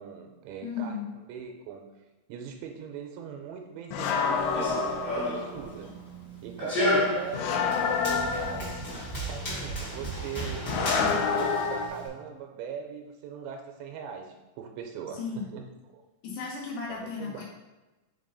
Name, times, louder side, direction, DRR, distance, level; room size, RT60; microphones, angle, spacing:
voice 1, 0.0-1.8 2.3-5.9 6.4-8.7 9.2-16.0 16.9-17.4, right 7 dB, 85° right, 4 dB, 2.9 m, -40 dB
voice 2, 0.6-1.1 15.1-15.4 16.2-17.4, left 5 dB, 65° left, -3 dB, 2.4 m, -35 dB
sound 1, 3.9-5.6 7.3-9.0 10.7-11.9, left 6 dB, 85° left, 2.8 m, -28 dB
Run, 4.4-12.1, equal, 35° left, 1.2 m, -32 dB
6.5 x 3.7 x 4.0 m, 1.1 s
omnidirectional pair, 5.1 m